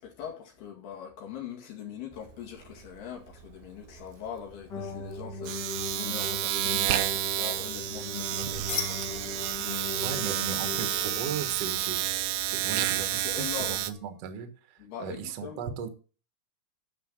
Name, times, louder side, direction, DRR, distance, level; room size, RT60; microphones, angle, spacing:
voice 1, 0.0-10.2 10.7-10.9 13.1-13.8 14.8-15.6, left 9 dB, 75° left, 4.0 m, -42 dB
Domestic sounds home sounds, 2.1-2.3 2.6-13.9, right 13 dB, 80° right, 2.4 m, -30 dB
sound 1, 4.7-11.8, left 3 dB, 45° left, 1.5 m, -39 dB
sound 2, 8.6-14.2, left 6 dB, 60° left, 1.2 m, -42 dB
voice 2, 10.0-15.9, right 7 dB, 55° right, 1.8 m, -37 dB
10.0 x 6.4 x 7.5 m
omnidirectional pair, 4.6 m